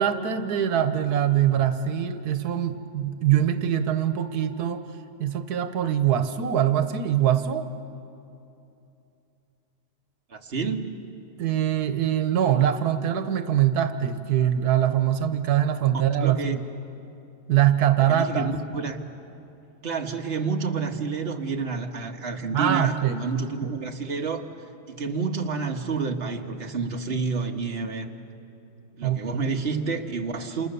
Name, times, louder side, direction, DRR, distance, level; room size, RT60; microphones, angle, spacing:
voice 1, 0.0-4.8 5.2-7.7 11.4-16.6 17.5-18.5 22.5-23.2 23.6-23.7 29.0-29.2, right 10 dB, 90° right, 9 dB, 1.5 m, -23 dB
voice 2, 10.3-10.9 16.2-16.6 18.0-19.0 19.8-24.5 24.9-28.1 29.0-30.7, right 4 dB, 40° right, 2 dB, 1.7 m, -29 dB
28.5 x 28.0 x 6.9 m, 2.7 s
omnidirectional pair, 1.6 m